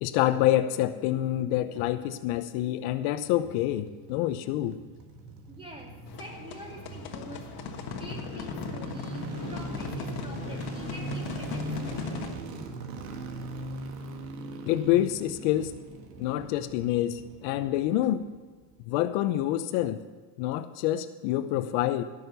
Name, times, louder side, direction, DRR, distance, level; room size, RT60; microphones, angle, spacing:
voice 1, 0.0-4.8 14.7-15.7 16.2-18.2 18.9-20.0 20.4-22.0, left 13 dB, 75° left, 11 dB, 0.9 m, -27 dB
sound 1, 3.1-18.4 18.6-18.7, right 2 dB, 85° right, 1.9 m, -40 dB
voice 2, 5.5-12.2 15.5-15.8, right 1 dB, 10° right, -1 dB, 3.1 m, -46 dB
sound 2, 6.1-12.4, left 7 dB, 50° left, 1.5 m, -38 dB
15.5 x 6.8 x 6.8 m, 1.4 s
supercardioid pair, 120°, 48 cm